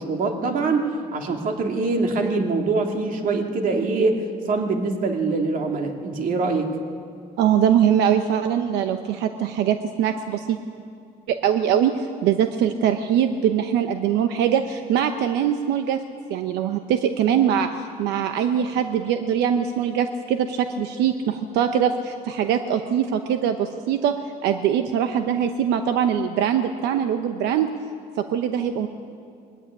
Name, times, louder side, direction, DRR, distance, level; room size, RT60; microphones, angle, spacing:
voice 1, 0.0-6.8, right 3 dB, 55° right, 3 dB, 2.5 m, -24 dB
voice 2, 7.4-10.6 11.3-16.0 16.3-24.2 24.4-27.7 28.2-28.9, right 9 dB, 85° right, 7 dB, 0.9 m, -22 dB
21.5 x 14.5 x 9.9 m, 2.4 s
cardioid pair, 110°, 17 cm